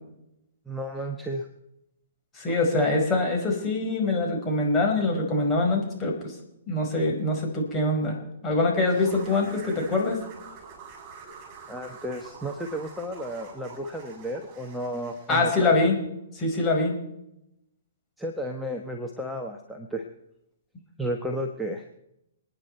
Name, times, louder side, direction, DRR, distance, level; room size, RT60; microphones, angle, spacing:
voice 1, 0.7-1.5 11.7-15.7 18.2-20.0 21.0-21.8, equal, ahead, 1 dB, 1.4 m, -33 dB
voice 2, 2.3-6.3 6.7-8.2 8.4-10.2 15.3-15.9 16.3-16.9, left 2 dB, 20° left, 0 dB, 5.1 m, -24 dB
sound 1, 8.9-15.5, right 5 dB, 35° right, 7.4 m, -46 dB
28.5 x 10.0 x 4.5 m, 0.83 s
hypercardioid pair, 130°, 0 cm